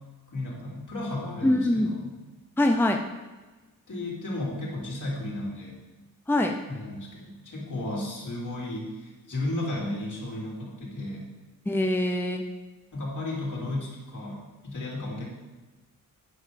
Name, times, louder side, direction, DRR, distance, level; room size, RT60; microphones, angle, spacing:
voice 1, 0.3-2.1 3.9-5.8 6.7-11.3 12.9-15.3, left 1 dB, 60° left, -4 dB, 3.4 m, -34 dB
voice 2, 1.4-2.0 2.6-3.0 6.3-6.5 11.7-12.4, left 1 dB, 5° left, 4 dB, 0.7 m, -23 dB
9.4 x 5.5 x 6.5 m, 1.2 s
cardioid pair, 85°, 35 cm